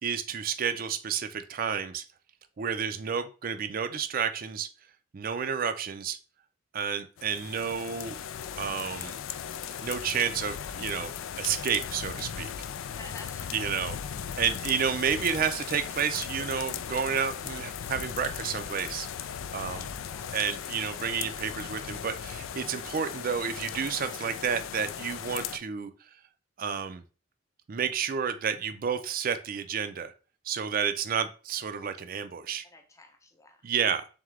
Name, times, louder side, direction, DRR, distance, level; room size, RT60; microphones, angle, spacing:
voice 1, 0.0-2.0 2.6-4.7 5.1-6.2 6.7-8.2 8.6-9.2 9.8-12.5 13.5-14.0 14.4-19.1 19.5-19.9 20.3-25.9 26.6-27.0 27.7-30.1 30.4-32.6 33.6-34.1, right 7 dB, 45° right, 10 dB, 0.4 m, -30 dB
sound 1, 7.2-25.6, left 8 dB, 80° left, 0.3 m, -37 dB
voice 2, 12.9-13.7 19.6-20.4 31.8-32.0 32.6-33.6, left 2 dB, 15° left, 5 dB, 0.6 m, -50 dB
3.7 x 3.6 x 3.2 m, 0.36 s
head